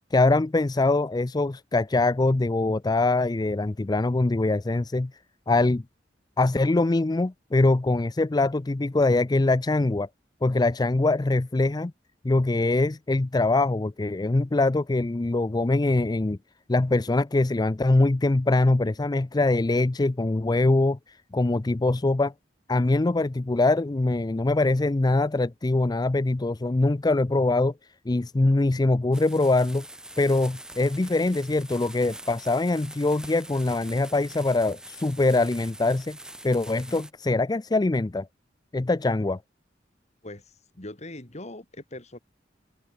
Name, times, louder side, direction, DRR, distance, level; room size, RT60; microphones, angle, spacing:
voice 1, 0.1-5.1 5.5-5.8 6.4-10.1 10.4-11.9 12.2-16.4 16.7-22.3 22.7-27.7 28.1-29.9 30.2-36.2 36.4-38.3 38.7-39.4, left 2 dB, 20° left, 0.5 m, -23 dB
sound 1, 29.1-37.1, right 1 dB, 5° right, 5.0 m, -44 dB
voice 2, 40.2-42.2, left 1 dB, 35° left, 3.0 m, -41 dB
head